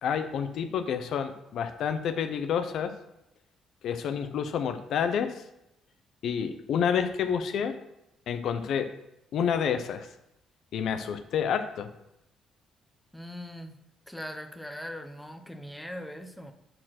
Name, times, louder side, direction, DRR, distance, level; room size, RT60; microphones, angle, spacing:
voice 1, 0.0-2.9 3.8-5.3 6.2-7.7 8.3-8.9 9.3-10.1 10.7-11.9, left 7 dB, 70° left, 9 dB, 0.7 m, -29 dB
voice 2, 13.1-13.7 14.1-16.5, equal, ahead, 5 dB, 0.8 m, -40 dB
8.8 x 4.5 x 5.8 m, 0.84 s
cardioid pair, 120°, 0 cm